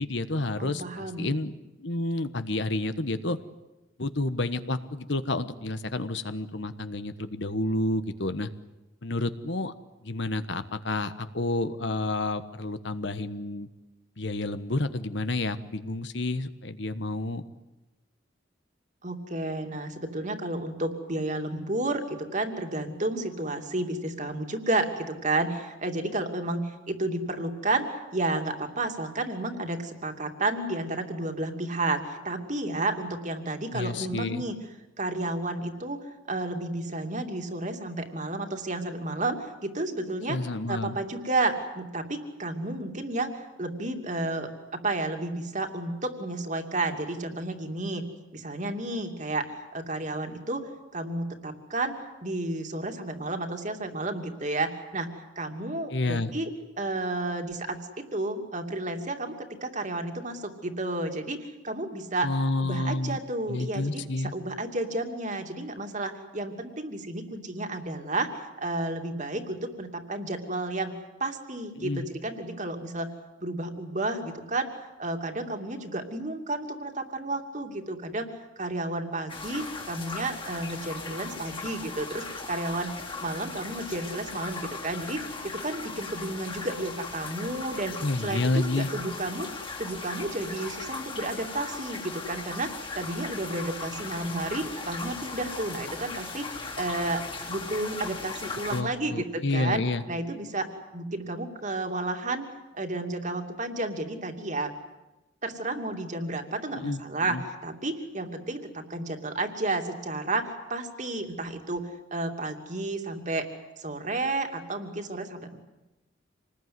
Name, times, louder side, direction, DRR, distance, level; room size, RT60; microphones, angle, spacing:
voice 1, 0.0-1.5 1.8-3.4 4.0-8.5 9.0-9.7 10.0-13.7 14.2-17.4 33.7-34.4 40.3-41.0 55.9-56.3 62.2-63.2 63.5-64.3 71.7-72.1 88.0-88.9 98.7-100.0 106.7-107.4, left 2 dB, 65° left, 12 dB, 1.3 m, -30 dB
voice 2, 0.6-1.3 19.0-34.6 35.0-36.0 36.3-40.4 40.7-48.0 48.3-52.0 52.2-56.5 56.8-62.3 62.6-68.3 68.6-70.9 71.2-73.1 73.4-78.3 78.6-88.0 88.2-89.5 89.8-99.8 100.1-102.4 102.7-104.7 105.4-113.5 113.8-115.6, right 2 dB, 40° right, 5 dB, 2.8 m, -32 dB
sound 1, 79.3-98.8, left 4 dB, 25° left, 2.9 m, -38 dB
27.0 x 20.0 x 9.6 m, 1.0 s
head